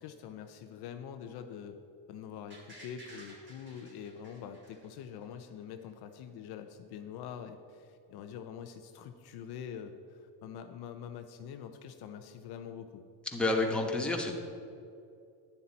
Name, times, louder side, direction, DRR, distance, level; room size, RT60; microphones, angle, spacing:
voice 1, 0.0-1.8 2.1-13.0, left 8 dB, 55° left, 7 dB, 0.8 m, -45 dB
sound 1, 2.5-5.4 5.8-5.9, right 1 dB, 25° right, 3.0 m, -54 dB
voice 2, 13.3-14.3, left 2 dB, ahead, 0 dB, 1.2 m, -29 dB
11.5 x 10.5 x 4.1 m, 2.5 s
cardioid pair, 135°, 45 cm